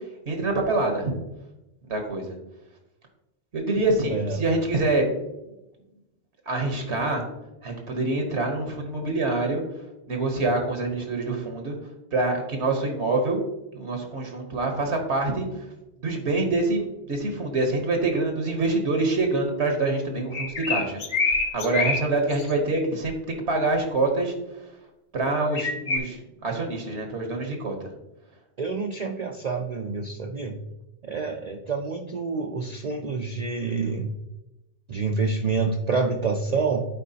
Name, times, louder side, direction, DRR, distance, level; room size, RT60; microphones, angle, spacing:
voice 1, 0.3-1.1 1.9-2.3 3.5-5.1 6.5-7.2 7.6-9.6 10.1-11.7 12.1-13.4 13.7-15.5 16.0-23.2 23.5-24.3 25.1-27.9, right 2 dB, 70° right, 3 dB, 1.4 m, -25 dB
sound 1, 20.3-22.0 22.3-22.5 23.1-23.2 25.5-26.0, left 4 dB, 50° left, 0.9 m, -26 dB
voice 2, 28.6-30.6 31.0-34.1 34.9-36.9, right 4 dB, 50° right, 2 dB, 0.5 m, -27 dB
11.0 x 4.6 x 2.8 m, 0.94 s
omnidirectional pair, 1.2 m